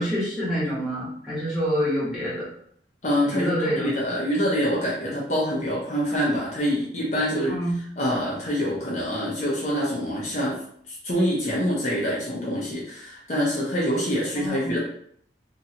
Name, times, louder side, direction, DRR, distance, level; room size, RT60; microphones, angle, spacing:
voice 1, 0.0-2.4 3.2-3.9 7.5-7.8 14.3-14.8, equal, ahead, -9 dB, 1.3 m, -26 dB
voice 2, 3.0-7.6 8.0-10.6 10.9-14.8, equal, 40° left, -6 dB, 0.7 m, -25 dB
3.0 x 2.6 x 2.8 m, 0.64 s
head